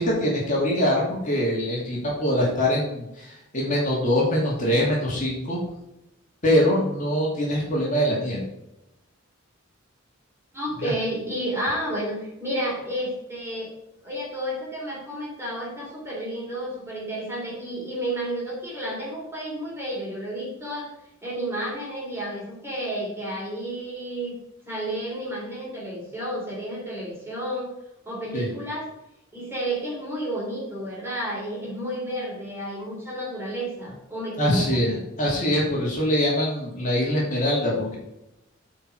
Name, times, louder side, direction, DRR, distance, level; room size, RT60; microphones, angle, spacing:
voice 1, 0.0-5.6 6.4-8.4 10.8-10.9 28.3-28.5 34.4-38.0, equal, 40° left, -3 dB, 2.5 m, -23 dB
voice 2, 10.5-13.7 14.0-20.9 21.2-24.4 24.6-27.7 28.0-28.9 29.3-34.7, right 1 dB, 10° right, -4 dB, 3.3 m, -31 dB
8.9 x 4.7 x 4.8 m, 0.89 s
head